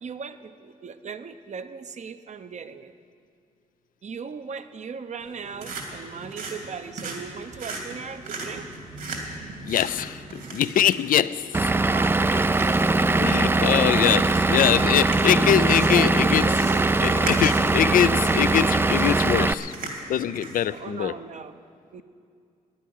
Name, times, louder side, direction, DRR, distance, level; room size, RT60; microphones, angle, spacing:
voice 1, 0.0-2.9 4.0-8.7 11.5-12.5 14.2-14.3 15.7-17.0 20.7-21.6 21.9-22.0, right 6 dB, 50° right, 11 dB, 0.8 m, -38 dB
sound 1, 5.2-20.8, right 3 dB, 70° right, 2.8 m, -39 dB
voice 2, 9.7-11.5 13.2-16.5 17.0-19.7 20.1-21.1, left 10 dB, 70° left, 17 dB, 0.5 m, -23 dB
Vehicle / Engine, 11.5-19.5, right 2 dB, 15° right, 0.4 m, -21 dB
12.0 x 10.0 x 9.6 m, 2.4 s
cardioid pair, 70°, 15 cm